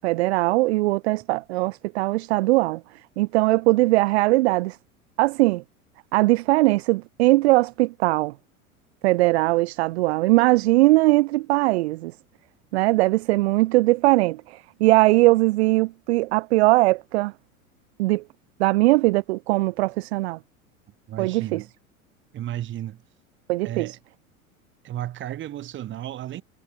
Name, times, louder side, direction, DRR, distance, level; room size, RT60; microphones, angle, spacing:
voice 1, 0.0-2.8 3.2-4.8 5.2-5.6 6.1-8.3 9.0-12.1 12.7-17.3 18.0-18.2 18.6-20.4 21.2-21.6 23.5-24.0, right 20 dB, 50° right, 0.6 m, -20 dB
voice 2, 21.1-21.7 22.3-23.0 23.6-24.0 24.8-26.4, right 12 dB, 25° right, 1.4 m, -33 dB
figure-of-eight pair, 85°, 44 cm